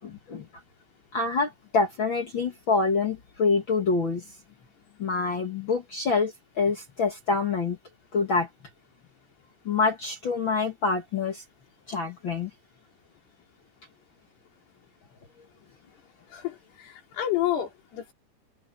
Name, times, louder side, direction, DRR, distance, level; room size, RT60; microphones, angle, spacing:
voice 1, 0.0-0.5 1.1-4.3 5.0-7.8 8.1-8.5 9.6-11.4 11.9-12.5, left 4 dB, 55° left, 1.4 m, -26 dB
voice 2, 16.3-18.1, left 12 dB, 75° left, 5.6 m, -30 dB
omnidirectional pair, 4.7 m